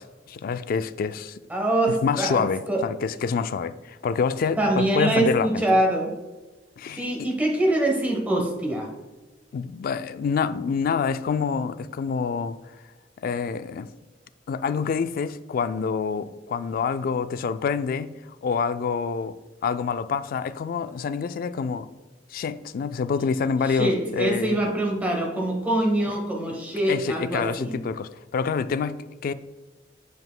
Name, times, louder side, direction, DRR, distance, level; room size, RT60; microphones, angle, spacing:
voice 1, 0.0-1.4 2.0-5.6 6.8-7.3 9.5-12.6 13.2-13.9 14.5-19.4 19.6-21.9 22.3-24.7 26.9-29.3, left 5 dB, 50° left, 12 dB, 0.3 m, -27 dB
voice 2, 1.5-2.8 4.6-6.1 6.9-8.9 23.6-27.8, right 1 dB, 10° right, -1 dB, 1.1 m, -24 dB
7.7 x 5.4 x 2.3 m, 1.2 s
head